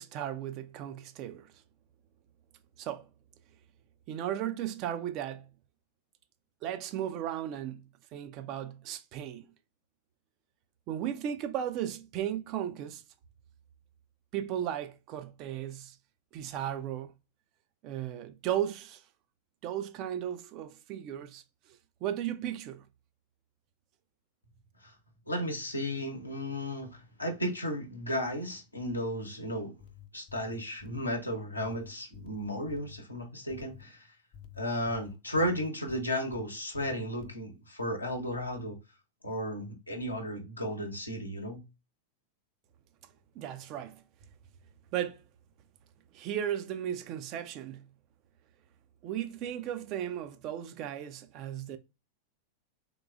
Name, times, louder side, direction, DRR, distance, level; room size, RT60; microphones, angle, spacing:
voice 1, 0.0-1.5 2.8-3.1 4.1-5.5 6.6-9.4 10.9-13.0 14.3-16.0 16.3-17.1 17.8-19.0 19.6-21.4 21.7-22.8 43.4-44.0 44.9-45.2 46.1-47.9 49.0-51.8, right 10 dB, 40° right, 0.4 m, -35 dB
voice 2, 25.3-29.8 30.1-34.1 34.6-38.8 39.2-41.6, equal, 85° left, 0.9 m, -34 dB
sound 1, 29.8-31.1 31.6-33.0 33.5-33.9 34.3-36.5 36.7-37.4, left 9 dB, 40° left, 0.5 m, -50 dB
3.7 x 2.9 x 2.3 m
figure-of-eight pair, 90°, 0 cm